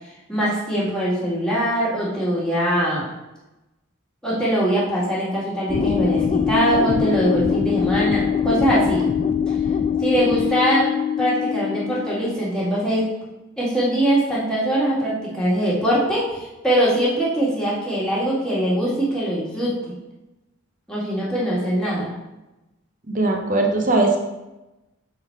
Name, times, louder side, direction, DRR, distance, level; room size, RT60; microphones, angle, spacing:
voice 1, 0.3-3.1 4.2-9.1 10.0-10.9 11.2-13.0 13.6-19.7 20.9-22.1, right 1 dB, 5° left, -8 dB, 1.9 m, -22 dB
sound 1, 5.7-12.3, left 7 dB, 30° left, 0.3 m, -22 dB
voice 2, 23.1-24.2, right 2 dB, 40° right, 1 dB, 1.0 m, -19 dB
6.3 x 3.9 x 4.6 m, 1.0 s
head